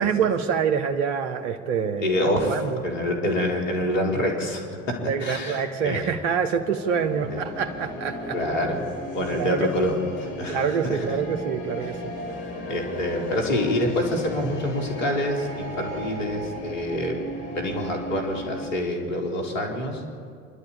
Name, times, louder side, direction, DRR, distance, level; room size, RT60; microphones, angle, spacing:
voice 1, 0.0-2.1 2.4-2.8 5.0-8.4 9.4-9.9 10.5-12.1, right 7 dB, 65° right, 6 dB, 1.3 m, -26 dB
voice 2, 2.0-2.6 2.8-4.9 5.2-6.1 7.3-7.4 8.3-8.8 9.1-9.9 10.4-11.1 12.7-17.2 17.5-20.0, left 1 dB, 75° left, 2 dB, 4.3 m, -26 dB
sound 1, 6.3-18.7, left 1 dB, 60° left, 5.3 m, -36 dB
26.0 x 12.0 x 8.9 m, 2.3 s
figure-of-eight pair, 70°, 38 cm